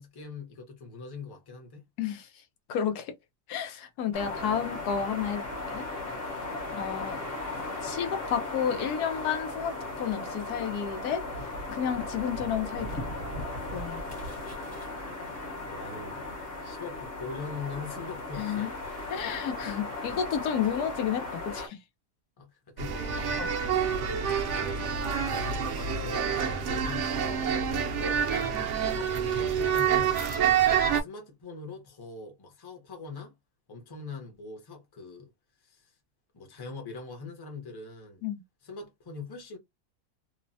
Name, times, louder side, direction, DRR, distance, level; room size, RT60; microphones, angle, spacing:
voice 1, 0.0-1.8 6.7-7.1 15.7-16.2 16.6-18.9 22.4-22.5 22.8-23.4 24.5-28.5 28.8-30.2 30.9-33.3 33.7-35.3 35.6-35.9 36.3-38.2 38.6-39.6, left 4 dB, 20° left, 0.6 m, -42 dB
voice 2, 2.0-2.3 2.7-3.1 3.5-5.4 5.7-5.8 6.7-7.2 7.8-11.2 11.7-13.0 13.7-14.0 18.4-18.7 19.1-21.8 23.4-23.5 28.5-28.6 38.2-38.4, left 8 dB, 90° left, 1.2 m, -31 dB
sound 1, 4.1-21.7, left 2 dB, 45° left, 1.1 m, -37 dB
sound 2, 22.8-31.0, right 7 dB, 65° right, 0.7 m, -27 dB
Bowed string instrument, 23.4-28.7, right 1 dB, 20° right, 0.4 m, -47 dB
3.0 x 2.1 x 2.6 m
omnidirectional pair, 1.6 m